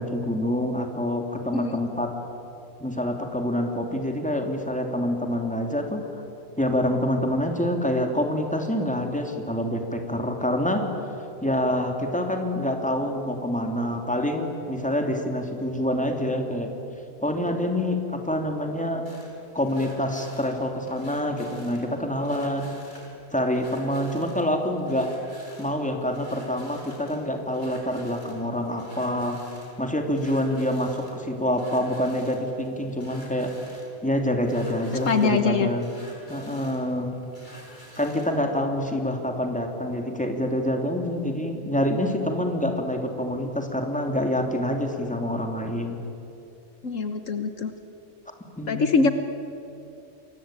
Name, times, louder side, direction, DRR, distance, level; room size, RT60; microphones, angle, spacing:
voice 1, 0.0-2.1 2.8-6.2 6.6-10.8 11.4-16.7 17.2-19.0 19.5-22.7 23.3-25.1 25.6-29.4 29.8-33.5 34.0-35.9 36.3-37.2 38.0-46.0 48.6-49.0, left 1 dB, 5° left, 3 dB, 2.9 m, -26 dB
sound 1, 19.0-38.4, equal, 35° left, 5.7 m, -50 dB
voice 2, 34.9-35.7 46.8-47.7 48.7-49.1, left 4 dB, 65° left, 8 dB, 1.6 m, -23 dB
29.0 x 23.0 x 9.0 m, 2.9 s
omnidirectional pair, 1.4 m